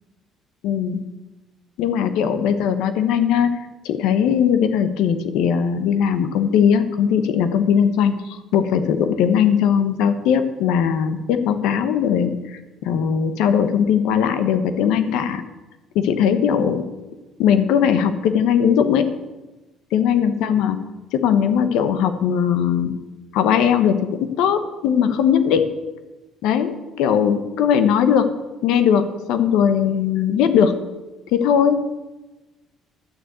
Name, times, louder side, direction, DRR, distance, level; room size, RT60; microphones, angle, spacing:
voice 1, 0.6-1.0 1.8-3.5 3.8-15.4 15.9-16.8 17.4-19.1 19.9-20.8 21.1-22.9 23.3-25.7 26.4-28.3 28.6-30.8 31.3-31.8, left 8 dB, 85° left, 9 dB, 1.0 m, -19 dB
12.0 x 6.6 x 8.1 m, 1.1 s
cardioid pair, 155°, 0 cm